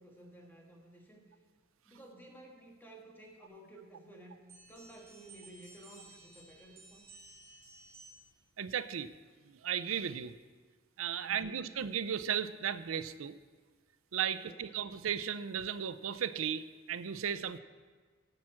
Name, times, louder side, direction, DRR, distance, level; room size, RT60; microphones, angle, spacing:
voice 1, 0.0-1.4 1.8-4.4 4.7-7.1 11.2-11.7 14.3-14.7, right 1 dB, 10° left, 0 dB, 1.6 m, -54 dB
sound 1, 4.5-8.4, right 2 dB, 15° right, 3.4 m, -56 dB
voice 2, 8.6-9.1 9.5-10.3 11.0-13.3 14.1-17.6, right 8 dB, 85° right, 14 dB, 0.5 m, -35 dB
10.5 x 5.8 x 7.6 m, 1.5 s
head